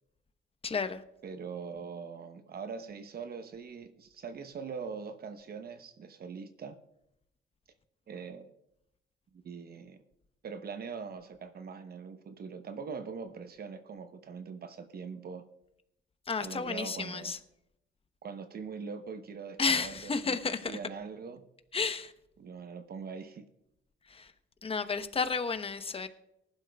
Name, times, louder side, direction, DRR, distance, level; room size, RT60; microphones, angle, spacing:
voice 1, 0.6-1.0 16.3-17.4 19.6-20.8 21.7-22.1 24.1-24.3 24.6-26.1, left 5 dB, 30° left, 0.9 m, -32 dB
voice 2, 1.2-6.8 8.1-8.5 9.3-10.0 10.4-15.4 16.4-17.3 18.2-21.4 22.4-23.4, right 5 dB, 50° right, 0.8 m, -42 dB
18.5 x 11.5 x 2.3 m
cardioid pair, 90°, 20 cm